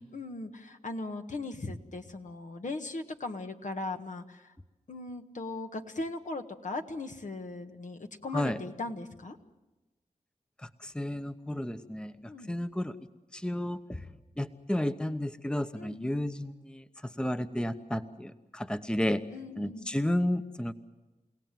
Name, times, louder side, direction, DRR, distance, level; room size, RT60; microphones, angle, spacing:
voice 1, 0.0-4.5 4.9-9.4 12.3-12.5 15.8-16.1 19.3-19.9, left 2 dB, 60° left, 5 dB, 1.6 m, -38 dB
voice 2, 10.6-12.9 13.3-14.1 14.4-19.2 19.6-20.7, left 1 dB, 5° left, 10 dB, 1.0 m, -32 dB
30.0 x 17.5 x 7.7 m, 1.1 s
cardioid pair, 55°, 14 cm